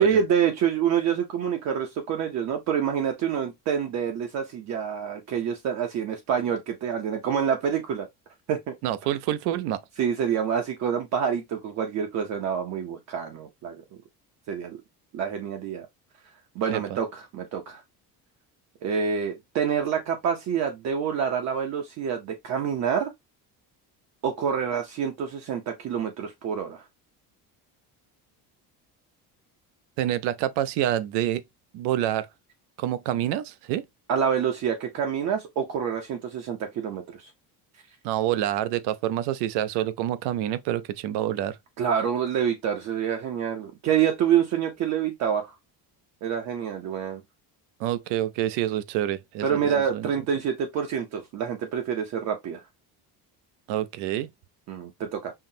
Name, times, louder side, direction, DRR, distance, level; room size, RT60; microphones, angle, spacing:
voice 1, 0.0-8.1 8.5-8.7 10.0-13.8 14.5-14.8 15.1-15.9 16.6-17.8 18.8-23.1 24.2-26.8 34.1-37.3 41.8-45.6 46.2-47.2 49.4-52.6 54.7-55.3, right 8 dB, 45° right, 0.5 m, -27 dB
voice 2, 8.8-9.8 16.7-16.8 30.0-31.4 31.7-32.3 32.8-33.8 38.0-41.6 47.8-50.1 53.7-54.3, right 12 dB, 90° right, 0.6 m, -27 dB
5.5 x 2.0 x 2.6 m
cardioid pair, 175°, 39 cm